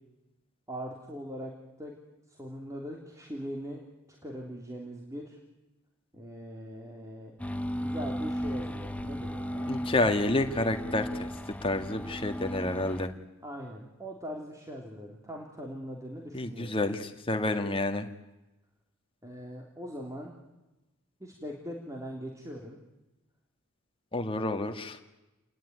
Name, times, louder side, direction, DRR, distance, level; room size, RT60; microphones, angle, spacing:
voice 1, 0.7-1.9 2.4-3.8 4.2-5.4 6.1-7.3 7.8-9.7 13.4-16.8 19.2-20.3 21.2-22.8, equal, 15° right, 0 dB, 3.3 m, -41 dB
sound 1, 7.4-13.1, equal, 5° left, 1.2 m, -36 dB
voice 2, 9.7-11.3 11.6-13.1 16.3-18.1 24.1-25.0, left 2 dB, 25° left, 6 dB, 1.9 m, -29 dB
29.0 x 20.5 x 9.6 m, 1.0 s
head